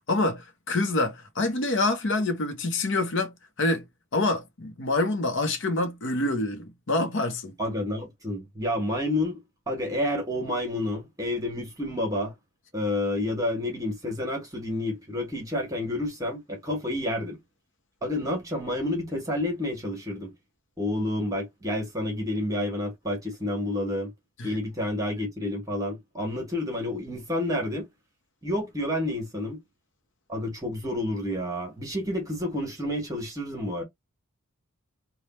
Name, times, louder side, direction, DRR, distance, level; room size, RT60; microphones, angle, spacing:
voice 1, 0.0-3.8 4.1-7.5 24.4-24.6, left 2 dB, 55° left, 0.9 m, -26 dB
voice 2, 7.6-9.4 9.7-12.3 12.7-17.4 18.0-20.3 20.8-24.1 24.4-27.9 28.4-29.6 30.3-33.8, left 1 dB, 15° right, 1.2 m, -29 dB
3.3 x 2.3 x 4.1 m
head